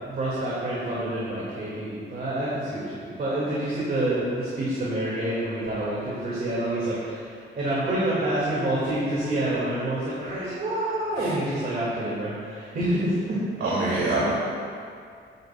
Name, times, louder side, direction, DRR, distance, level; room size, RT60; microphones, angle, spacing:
voice 1, 0.0-13.4, right 1 dB, 45° right, -8 dB, 2.1 m, -27 dB
voice 2, 13.6-14.3, right 2 dB, 85° right, -9 dB, 2.4 m, -24 dB
13.0 x 9.2 x 2.3 m, 2.3 s
wide cardioid pair, 135°, 21 cm